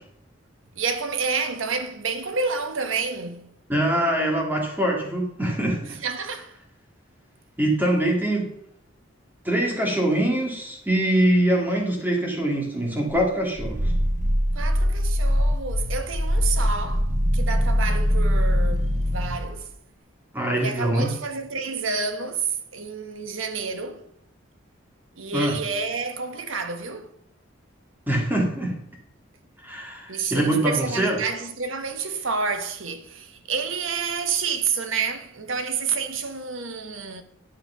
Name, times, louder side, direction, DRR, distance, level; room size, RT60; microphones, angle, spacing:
voice 1, 0.8-3.5 6.0-6.5 14.5-19.7 20.5-24.0 25.2-27.1 30.1-37.2, right 5 dB, 80° right, 1.2 m, -29 dB
voice 2, 3.7-6.0 7.6-8.5 9.4-13.9 20.3-21.1 25.3-25.6 28.1-28.7 29.6-31.2, right 1 dB, 10° right, 2.1 m, -23 dB
Growling, 13.1-19.4, equal, 35° right, 1.2 m, -22 dB
10.0 x 5.6 x 5.6 m
head